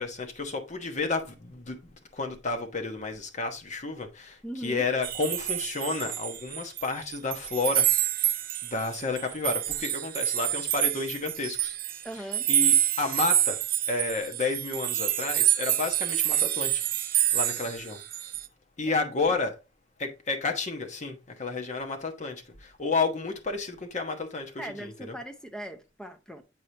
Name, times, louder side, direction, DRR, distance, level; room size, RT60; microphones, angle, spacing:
voice 1, 0.0-7.9 8.6-11.8 12.5-13.6 13.9-16.8 17.3-18.0 18.8-19.5 20.0-25.1, left 3 dB, 40° left, 1.1 m, -31 dB
voice 2, 4.4-4.9 12.0-12.5 19.3-19.4 24.6-26.4, right 1 dB, 5° left, 0.6 m, -39 dB
sound 1, 5.0-6.9 7.1-18.5, right 12 dB, 50° right, 0.5 m, -27 dB
7.5 x 4.9 x 2.8 m
head